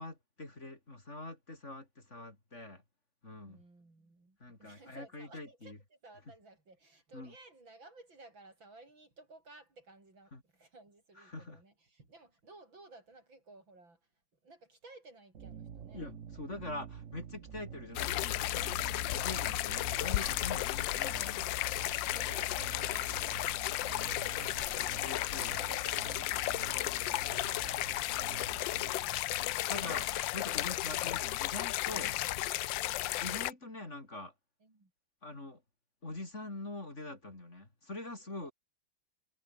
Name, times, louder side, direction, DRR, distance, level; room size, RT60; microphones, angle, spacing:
voice 1, 0.0-2.8 3.2-3.6 4.4-5.8 7.1-7.3 10.3-10.4 11.2-11.6 15.9-21.5 25.0-25.6 29.4-32.2 33.2-34.3 35.2-35.6 36.0-38.5, left 2 dB, 30° left, 4.3 m, -44 dB
voice 2, 3.5-14.0 14.4-16.0 21.9-24.8 25.5-27.9 28.5-29.8 32.7-33.1 34.6-34.9 38.3-38.5, right 2 dB, 60° right, 7.0 m, -56 dB
sound 1, 15.3-28.9, right 7 dB, 45° right, 1.2 m, -49 dB
sound 2, 18.0-33.5, left 15 dB, 70° left, 1.2 m, -34 dB
omnidirectional pair, 2.3 m